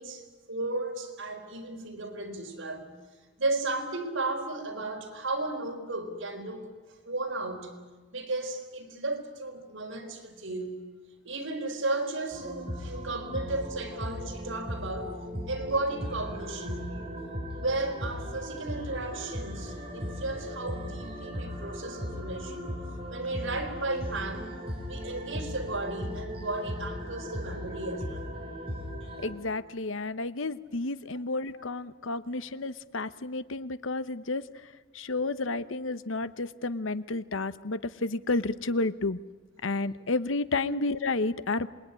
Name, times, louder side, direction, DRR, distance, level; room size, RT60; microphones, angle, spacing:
voice 1, 0.0-2.9 3.4-6.7 7.0-7.8 8.1-10.8 11.2-15.2 15.5-17.1 17.6-24.5 24.9-28.4 40.6-40.7, right 2 dB, 75° right, 3 dB, 4.3 m, -34 dB
sound 1, 12.3-29.3, equal, 30° right, 5.1 m, -37 dB
voice 2, 29.2-34.4 34.9-39.2 39.6-41.7, left 3 dB, 80° left, 14 dB, 0.9 m, -31 dB
27.0 x 20.5 x 9.8 m, 1.3 s
head